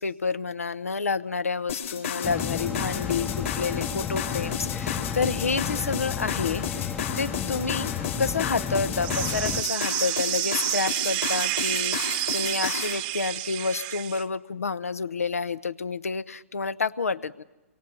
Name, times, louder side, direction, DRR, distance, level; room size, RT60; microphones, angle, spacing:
voice 1, 0.0-7.9 8.2-17.4, left 4 dB, 90° left, 17 dB, 0.9 m, -29 dB
sound 1, 1.7-13.0, left 7 dB, 65° left, 4.6 m, -33 dB
sound 2, 2.2-9.6, left 8 dB, 15° left, 0.7 m, -32 dB
sound 3, 9.0-14.2, right 18 dB, 40° right, 0.9 m, -29 dB
28.5 x 23.5 x 6.9 m, 1.1 s
hypercardioid pair, 130°, 8 cm